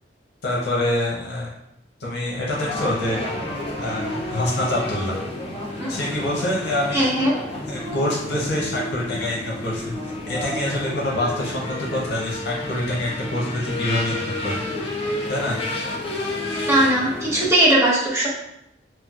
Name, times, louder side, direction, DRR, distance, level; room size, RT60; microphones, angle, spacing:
voice 1, 0.4-1.5 2.0-3.2 3.8-5.2 5.9-7.1 7.7-9.9 10.3-14.6 15.3-15.6, left 1 dB, 70° left, -3 dB, 0.7 m, -25 dB
sound 1, 2.5-17.5, left 1 dB, 35° left, 0.6 m, -30 dB
voice 2, 6.9-7.3 16.7-18.3, right 1 dB, 15° right, -6 dB, 0.8 m, -19 dB
4.1 x 2.1 x 2.3 m, 0.81 s
head